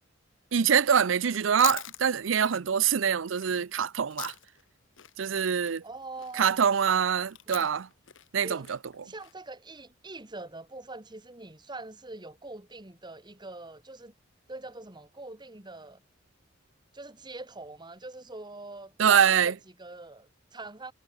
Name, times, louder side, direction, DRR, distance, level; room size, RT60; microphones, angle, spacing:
voice 1, 0.5-4.3 5.2-5.8 6.3-7.9 8.3-9.1 19.0-19.5, right 7 dB, 80° right, 0.6 m, -24 dB
Chewing mastication, 1.3-4.7 5.0-9.3, left 14 dB, 75° left, 1.3 m, -42 dB
voice 2, 5.8-6.6 7.5-7.7 8.4-8.7 9.0-14.1 14.5-16.0 16.9-20.9, right 2 dB, 25° right, 2.0 m, -43 dB
head